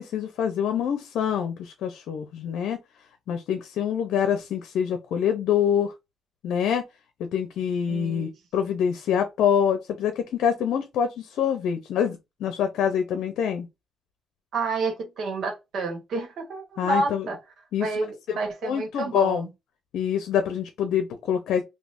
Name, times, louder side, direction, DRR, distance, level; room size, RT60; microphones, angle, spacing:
voice 1, 0.0-2.8 3.3-5.9 6.4-6.8 7.2-13.7 16.8-17.3 17.7-18.4 18.6-19.5 19.9-21.6, left 8 dB, 80° left, 0.6 m, -25 dB
voice 2, 7.9-8.3 14.5-17.4 17.8-19.5, right 3 dB, 65° right, 1.7 m, -29 dB
3.4 x 2.8 x 2.5 m
cardioid pair, 90°, 0 cm